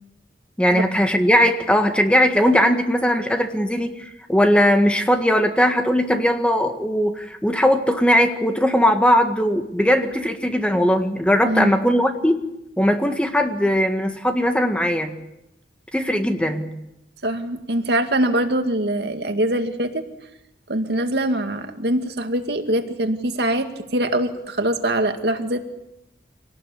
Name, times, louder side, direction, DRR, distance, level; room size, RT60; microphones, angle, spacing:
voice 1, 0.6-12.4 12.8-15.1 15.9-16.7, equal, 5° left, 6 dB, 1.6 m, -19 dB
voice 2, 11.4-11.8 17.2-20.0 20.7-25.7, right 1 dB, 70° right, 6 dB, 2.2 m, -23 dB
26.5 x 18.5 x 8.5 m, 0.88 s
head